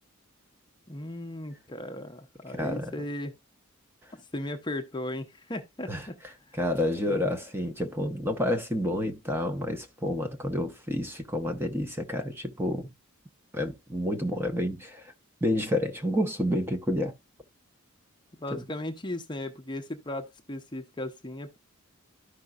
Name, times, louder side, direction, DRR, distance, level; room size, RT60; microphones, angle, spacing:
voice 1, 0.9-3.3 4.1-6.2 6.5-6.6 7.1-7.2 18.4-21.6, left 1 dB, 20° left, 0.8 m, -36 dB
voice 2, 2.5-2.9 5.9-6.1 6.5-12.9 13.5-15.1 15.4-17.1 18.5-18.6, left 1 dB, 10° right, 0.9 m, -29 dB
13.0 x 5.3 x 2.3 m
head